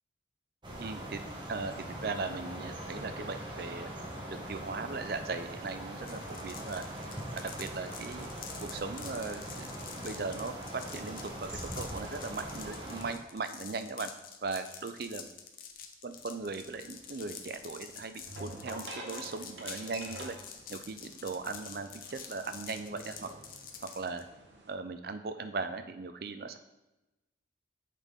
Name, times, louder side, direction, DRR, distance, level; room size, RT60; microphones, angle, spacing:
sound 1, 0.6-13.1, right 1 dB, 25° right, 1.0 m, -42 dB
voice 1, 0.8-1.2 1.5-1.7 2.0-3.9 4.3-6.9 7.3-8.3 8.6-14.1 14.4-15.3 16.0-20.4 20.7-23.3 24.0-24.2 24.7-26.6, right 4 dB, 55° right, 9 dB, 0.5 m, -38 dB
sound 2, 6.0-24.2, left 7 dB, 50° left, 0.6 m, -47 dB
sound 3, 16.2-24.7, right 2 dB, 90° right, 1.1 m, -48 dB
8.3 x 4.1 x 3.6 m, 0.98 s
head